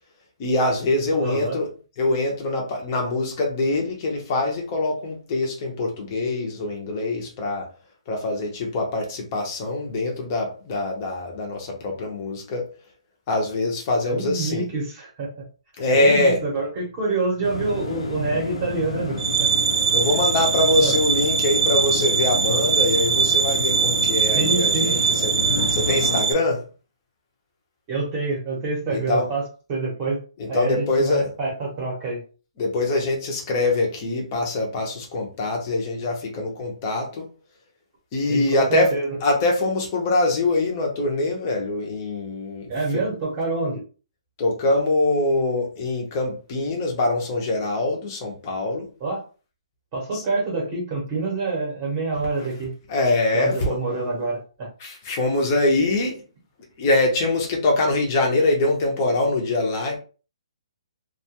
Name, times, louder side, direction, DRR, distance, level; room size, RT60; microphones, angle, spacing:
voice 1, 0.4-1.7 2.0-7.7 8.1-12.7 13.3-14.7 15.8-16.4 19.9-25.3 25.7-26.6 28.9-29.3 30.4-31.3 32.6-37.3 38.1-38.9 39.2-43.0 44.4-48.9 50.1-50.2 52.9-53.8 54.8-56.2 56.8-60.0, left 2 dB, 20° left, 0.6 m, -23 dB
voice 2, 1.2-1.6 14.0-15.4 15.9-19.5 20.8-21.0 24.3-25.0 27.9-29.4 29.7-30.2 30.5-32.2 38.3-39.2 42.7-43.8 49.0-49.2 49.9-52.7 53.3-54.7, right 3 dB, 20° right, 0.8 m, -27 dB
sound 1, 17.4-26.2, left 3 dB, 75° left, 0.6 m, -30 dB
sound 2, 19.2-26.3, right 6 dB, 55° right, 0.6 m, -22 dB
2.3 x 2.2 x 2.9 m
hypercardioid pair, 175°, 3 cm